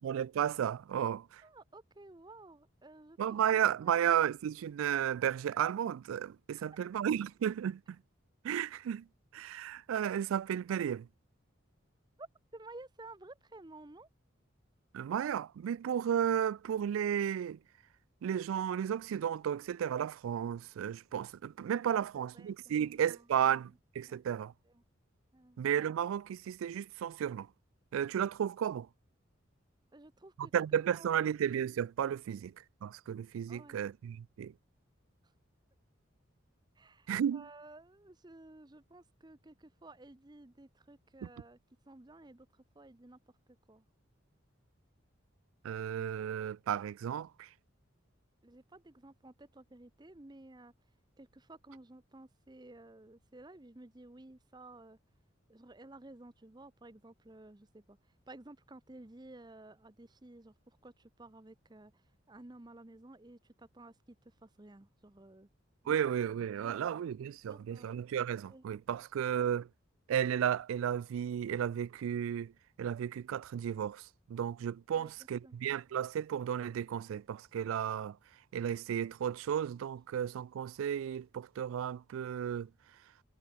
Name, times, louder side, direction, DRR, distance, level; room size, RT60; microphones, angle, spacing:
voice 1, 0.0-1.4 3.2-8.0 8.4-9.0 9.3-11.1 14.9-17.6 18.2-24.5 25.6-27.5 27.9-28.9 30.4-32.5 32.8-34.5 37.1-37.5 41.2-41.3 45.6-47.5 65.9-69.7 70.1-72.5 72.8-78.2 78.5-82.7, right 9 dB, 85° right, 0.3 m, -33 dB
voice 2, 1.4-3.2 3.5-4.0 6.6-6.8 12.2-12.3 12.5-14.1 22.1-23.2 24.1-24.8 25.3-25.6 29.9-30.5 30.9-31.3 33.5-33.8 36.8-41.6 41.9-42.5 42.8-43.2 43.7-43.8 48.4-50.7 51.2-55.0 55.5-58.0 58.3-61.9 62.3-64.2 64.4-65.5 66.5-67.9 68.5-68.6 74.9-75.1 75.4-75.6, right 2 dB, 20° right, 0.7 m, -54 dB
head